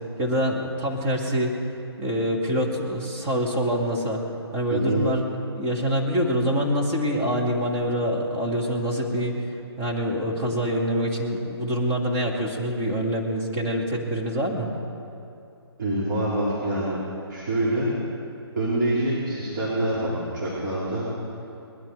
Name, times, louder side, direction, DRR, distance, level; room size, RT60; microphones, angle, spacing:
voice 1, 0.2-1.5 2.0-4.2 4.5-5.2 5.6-9.5 9.8-14.7, equal, 20° right, -2 dB, 2.0 m, -25 dB
voice 2, 4.7-5.0 15.8-17.0 17.3-17.9 18.6-21.1, right 1 dB, 50° right, -8 dB, 3.9 m, -25 dB
20.5 x 12.0 x 4.8 m, 2.6 s
figure-of-eight pair, 150°, 14 cm